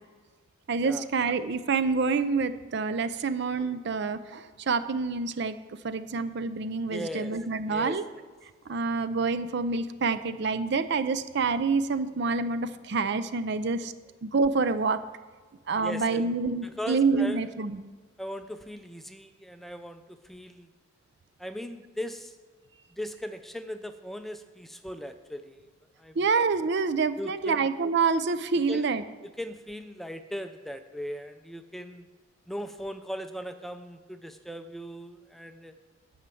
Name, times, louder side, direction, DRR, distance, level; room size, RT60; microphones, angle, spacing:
voice 1, 0.7-5.6 5.8-8.0 8.7-13.9 14.2-15.0 15.7-17.8 26.2-29.0, right 4 dB, 55° right, 12 dB, 0.5 m, -27 dB
voice 2, 6.9-7.3 7.7-8.0 15.8-16.3 16.6-17.4 18.2-20.7 21.4-22.4 22.9-25.7 26.0-26.3 27.2-27.6 28.7-28.9 29.2-32.1 32.5-35.8, equal, ahead, 8 dB, 0.4 m, -38 dB
9.3 x 5.7 x 7.6 m, 1.4 s
head